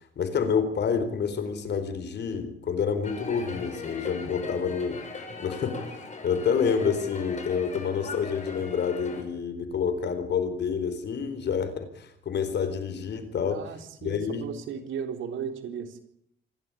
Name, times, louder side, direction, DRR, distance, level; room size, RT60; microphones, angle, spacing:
voice 1, 0.2-5.0 5.4-5.8 6.2-13.6 14.0-14.4, left 6 dB, 60° left, 10 dB, 4.2 m, -28 dB
sound 1, 3.0-9.2, left 3 dB, 35° left, 6.0 m, -39 dB
voice 2, 13.4-16.0, right 7 dB, 80° right, 6 dB, 4.1 m, -36 dB
26.5 x 12.5 x 9.8 m, 0.73 s
cardioid pair, 90°, 20 cm